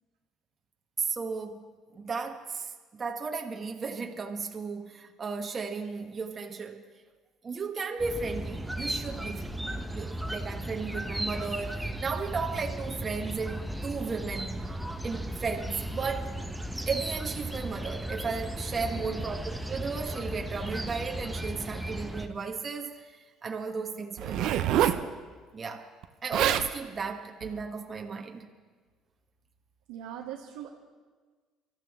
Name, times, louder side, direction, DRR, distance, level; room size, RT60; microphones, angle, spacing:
voice 1, 1.0-6.9 7.4-14.7 15.0-16.3 16.9-24.7 24.9-25.1 25.5-25.9 26.2-28.5, right 5 dB, 35° right, 1.4 m, -35 dB
sound 1, 8.0-22.3, right 1 dB, 5° right, 1.2 m, -36 dB
Zipper (clothing), 24.2-25.0 26.0-26.1 26.3-26.7 27.4-27.6, right 11 dB, 70° right, 0.8 m, -26 dB
voice 2, 29.9-30.7, right 10 dB, 90° right, 1.2 m, -40 dB
25.0 x 13.5 x 3.7 m
supercardioid pair, 80°, 0 cm